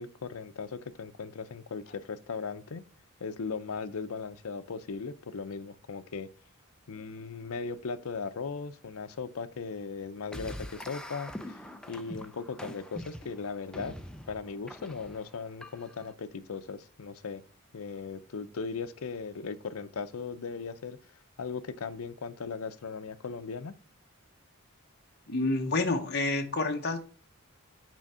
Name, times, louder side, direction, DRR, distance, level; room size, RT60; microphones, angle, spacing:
voice 1, 0.0-2.8 3.2-6.3 6.9-11.5 11.9-13.9 14.3-17.4 17.7-21.0 21.4-23.7, left 5 dB, 80° left, 0.6 m, -38 dB
sound 1, 10.3-16.1, left 1 dB, 5° left, 0.4 m, -44 dB
voice 2, 25.3-27.0, left 2 dB, 50° left, 0.8 m, -28 dB
6.2 x 4.4 x 5.5 m
head